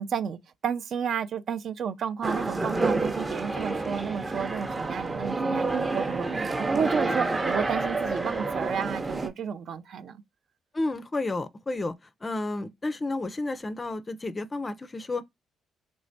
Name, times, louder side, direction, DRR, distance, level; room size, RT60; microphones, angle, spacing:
voice 1, 0.0-10.2, right 7 dB, 60° right, 0.4 m, -32 dB
sound 1, 2.2-9.3, right 3 dB, 25° right, 0.6 m, -29 dB
voice 2, 10.7-11.9 12.2-15.2, left 2 dB, 25° left, 0.4 m, -31 dB
3.2 x 3.1 x 2.6 m
cardioid pair, 90°, 0 cm